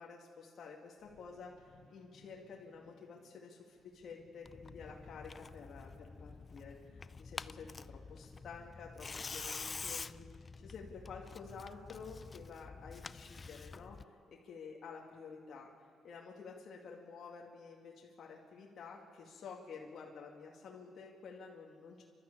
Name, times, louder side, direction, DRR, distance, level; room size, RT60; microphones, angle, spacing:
voice 1, 0.0-14.0 14.3-15.7 16.0-22.0, left 5 dB, 60° left, -1 dB, 2.3 m, -51 dB
sound 1, 1.0-5.9 6.5-6.6, left 4 dB, 90° left, 2.6 m, -65 dB
Tearing, 4.4-14.0, left 4 dB, 30° left, 0.5 m, -47 dB
30.0 x 12.5 x 8.7 m, 2.2 s
cardioid pair, 90°, 0 cm